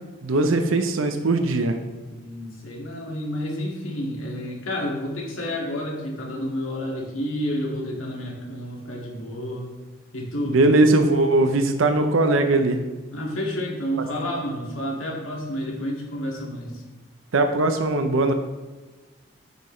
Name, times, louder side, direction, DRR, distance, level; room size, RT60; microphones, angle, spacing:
voice 1, 0.2-1.8 10.5-12.8 17.3-18.3, right 2 dB, 85° right, 6 dB, 0.6 m, -20 dB
voice 2, 2.1-9.7 10.1-10.6 13.1-16.8, equal, 85° left, -1 dB, 1.9 m, -30 dB
9.2 x 5.8 x 3.2 m, 1.2 s
head